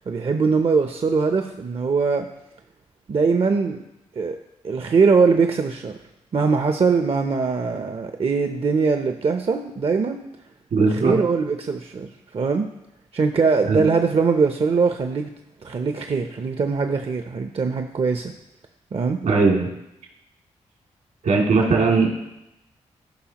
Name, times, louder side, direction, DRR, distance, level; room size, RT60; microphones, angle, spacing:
voice 1, 0.1-2.3 3.1-3.8 4.2-4.4 4.6-6.0 6.3-10.2 10.8-12.7 13.1-15.3 15.6-18.3 18.9-19.2, right 4 dB, 45° right, 6 dB, 0.7 m, -21 dB
voice 2, 10.7-11.2 13.7-13.8 19.2-19.7 21.2-22.1, right 4 dB, 75° right, -2 dB, 2.6 m, -18 dB
14.0 x 5.6 x 3.0 m, 0.88 s
supercardioid pair, 40°, 13 cm